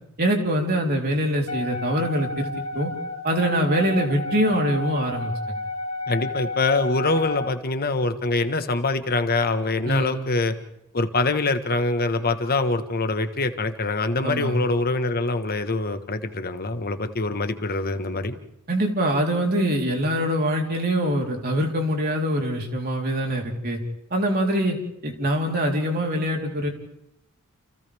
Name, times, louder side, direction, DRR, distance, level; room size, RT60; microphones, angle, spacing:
voice 1, 0.2-2.9 3.2-5.3 9.8-10.2 14.2-14.5 18.7-23.8 24.1-24.8 25.0-26.7, equal, 45° right, 1 dB, 3.8 m, -24 dB
Wind instrument woodwind instrument, 1.5-7.5, left 2 dB, 70° left, 3.6 m, -32 dB
voice 2, 6.1-10.6 10.9-18.4, left 3 dB, 45° left, 8 dB, 1.5 m, -24 dB
29.5 x 29.0 x 3.6 m, 0.78 s
head